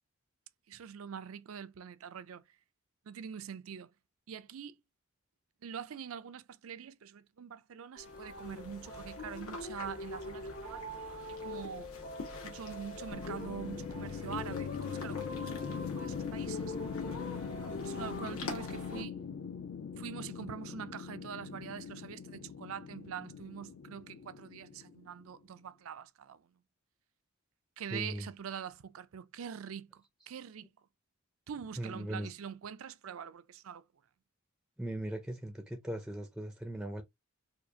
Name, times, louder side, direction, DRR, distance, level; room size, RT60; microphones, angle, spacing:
voice 1, 0.7-2.4 3.1-3.9 4.3-4.8 5.6-10.8 11.3-11.9 12.4-15.6 16.0-16.8 17.8-19.1 20.0-26.4 27.8-30.7 31.5-33.8, right 7 dB, 70° right, 0.4 m, -44 dB
sound 1, 8.0-19.0, left 2 dB, 85° left, 1.5 m, -43 dB
sound 2, 13.1-25.3, left 6 dB, 60° left, 0.4 m, -41 dB
voice 2, 27.9-28.3 31.8-32.3 34.8-37.0, right 1 dB, 5° right, 0.4 m, -39 dB
4.4 x 2.4 x 2.7 m
head